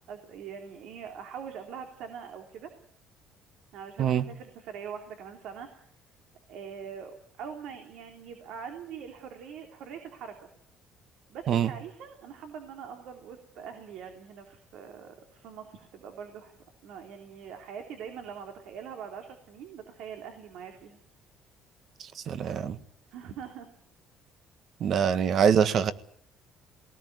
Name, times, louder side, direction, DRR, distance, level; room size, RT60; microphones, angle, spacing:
voice 1, 0.1-2.7 3.7-5.9 6.5-10.5 11.3-16.5 16.8-21.0 23.1-23.7, right 7 dB, 75° right, 5 dB, 3.2 m, -43 dB
voice 2, 22.2-22.8 24.8-25.9, right 8 dB, 50° right, 13 dB, 1.5 m, -24 dB
20.5 x 19.0 x 9.4 m, 0.65 s
cardioid pair, 140°, 0 cm